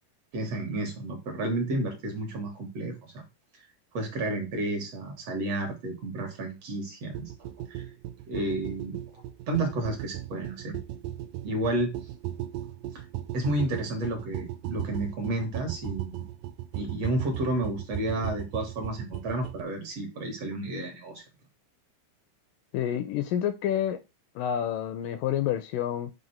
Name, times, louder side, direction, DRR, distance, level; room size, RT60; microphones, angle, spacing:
voice 1, 0.3-3.2 3.9-7.8 8.3-10.8 11.4-11.9 12.9-13.0 13.3-16.2 16.7-21.2, right 1 dB, 55° right, 2.0 m, -31 dB
sound 1, 7.1-19.6, right 13 dB, 85° right, 1.8 m, -37 dB
voice 2, 22.7-24.0 24.4-26.1, left 10 dB, 80° left, 2.0 m, -28 dB
7.7 x 2.8 x 5.5 m
omnidirectional pair, 4.2 m